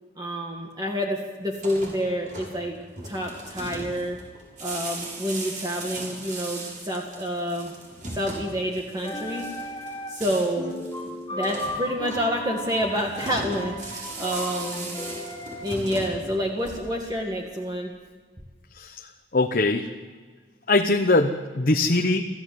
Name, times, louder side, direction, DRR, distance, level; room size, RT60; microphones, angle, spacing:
voice 1, 0.2-2.8 3.0-4.2 4.6-7.7 8.1-9.5 10.1-10.7 11.3-14.9 15.6-17.9, equal, 25° right, 0 dB, 2.0 m, -28 dB
sound 1, 1.5-17.1, right 2 dB, 45° right, 7.1 m, -39 dB
sound 2, 8.9-10.3 10.6-15.6, left 1 dB, 20° left, 2.7 m, -35 dB
voice 2, 18.7-19.1 19.3-19.9 20.7-22.2, left 2 dB, 55° left, 4 dB, 1.0 m, -22 dB
26.5 x 14.5 x 7.9 m, 1.5 s
head